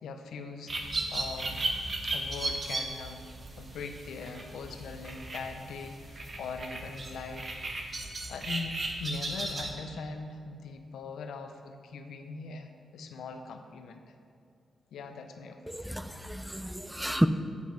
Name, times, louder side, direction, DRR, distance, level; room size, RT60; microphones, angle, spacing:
voice 1, 0.0-0.7 1.1-1.6 2.0-3.3 3.6-7.6 8.3-14.0 14.9-15.9, left 4 dB, 90° left, 6 dB, 0.6 m, -41 dB
sound 1, 0.7-9.7, right 2 dB, 40° right, 1.0 m, -36 dB
voice 2, 15.7-17.3, equal, 5° right, 10 dB, 0.4 m, -30 dB
7.9 x 5.2 x 5.0 m, 2.4 s
cardioid pair, 70°, 0 cm